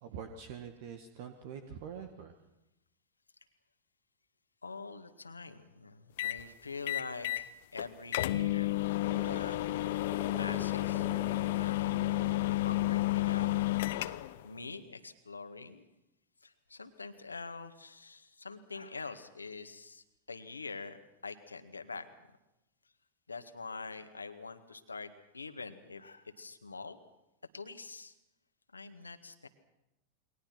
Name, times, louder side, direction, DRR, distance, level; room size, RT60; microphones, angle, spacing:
voice 1, 0.0-2.3, right 7 dB, 50° right, 7 dB, 1.9 m, -45 dB
voice 2, 4.6-8.7 9.1-9.6 10.4-11.1 11.6-13.6 14.4-15.9 16.4-22.1 23.3-27.0 27.5-28.1 28.7-29.5, left 4 dB, 80° left, 9 dB, 1.9 m, -45 dB
sound 1, 6.2-6.4 6.9-7.5 7.8-7.9 8.1-14.4, left 17 dB, 55° left, 0.9 m, -31 dB
sound 2, 9.0-13.1 14.2-14.6, left 2 dB, ahead, 2.1 m, -47 dB
29.0 x 23.0 x 6.0 m, 0.93 s
figure-of-eight pair, 90°, 0 cm